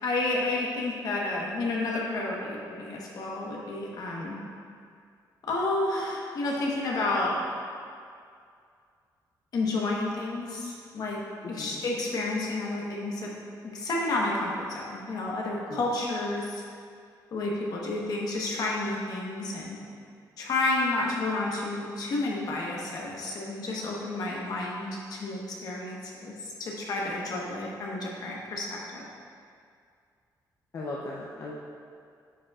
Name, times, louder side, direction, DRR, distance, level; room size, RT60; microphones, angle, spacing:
voice 1, 0.0-4.4 5.4-7.4 9.5-11.2 11.5-13.3 13.6-16.6 17.3-19.8 20.4-29.0, left 2 dB, 60° left, -3 dB, 1.1 m, -30 dB
voice 2, 30.7-31.5, left 2 dB, 40° left, -5 dB, 0.6 m, -37 dB
9.6 x 5.1 x 2.4 m, 2.3 s
wide cardioid pair, 160°, 8 cm